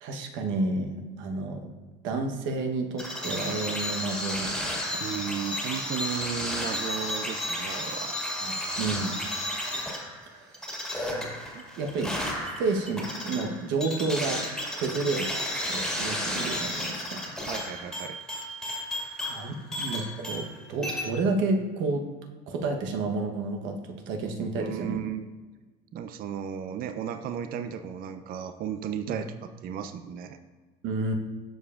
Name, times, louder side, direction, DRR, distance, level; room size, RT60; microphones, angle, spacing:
voice 1, 0.0-1.7 2.0-4.8 8.4-9.1 10.3-10.6 11.1-11.3 11.8-14.4 14.7-15.3 15.7-17.2 19.3-22.1 22.5-25.0 29.1-29.2 30.8-31.1, right 3 dB, 70° right, 3 dB, 1.1 m, -30 dB
sound 1, 3.0-20.6 20.8-21.0, left 1 dB, ahead, 1.9 m, -33 dB
voice 2, 5.0-8.1 11.5-11.6 17.5-18.2 24.6-25.3 25.9-30.4, right 8 dB, 45° right, 8 dB, 0.5 m, -35 dB
12.5 x 4.8 x 2.5 m, 1.3 s
supercardioid pair, 95°, 21 cm